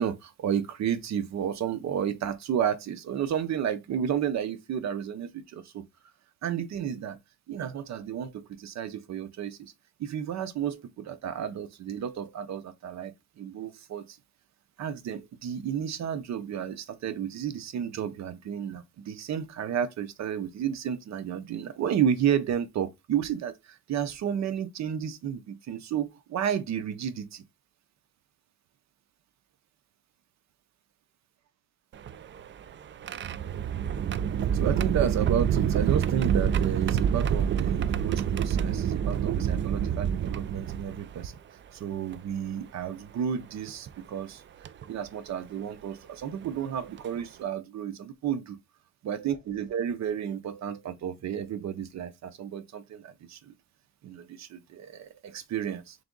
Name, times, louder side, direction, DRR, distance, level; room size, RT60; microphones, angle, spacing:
voice 1, 0.0-5.8 6.4-7.2 7.5-9.7 10.0-14.2 14.8-27.4 34.5-41.3 41.7-44.4 44.9-48.6 49.0-53.5 54.0-56.0, right 9 dB, 65° right, 0.7 m, -32 dB
sound 1, 31.9-41.2 42.1-42.2 43.7-43.9 44.6-44.8 46.4-46.5 47.0-47.2, right 8 dB, 40° right, 0.4 m, -27 dB
3.4 x 3.4 x 3.8 m
cardioid pair, 90°, 30 cm